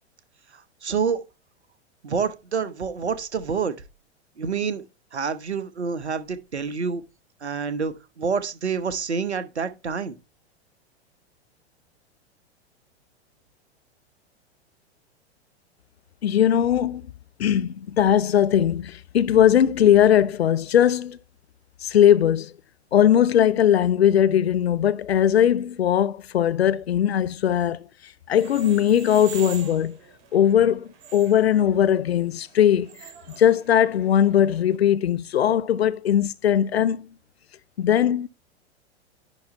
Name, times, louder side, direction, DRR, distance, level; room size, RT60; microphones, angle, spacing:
voice 1, 0.8-1.2 2.0-3.7 4.4-4.8 5.1-7.0 7.4-10.2, right 6 dB, 75° right, 1.1 m, -27 dB
voice 2, 16.2-17.0 17.4-21.2 21.8-22.5 22.9-27.9 28.3-30.0 30.3-32.9 33.4-37.1 37.8-38.3, left 10 dB, 65° left, 0.6 m, -19 dB
sound 1, 28.3-34.8, right 7 dB, 45° right, 2.8 m, -44 dB
10.5 x 4.1 x 4.4 m
figure-of-eight pair, 95°, 33 cm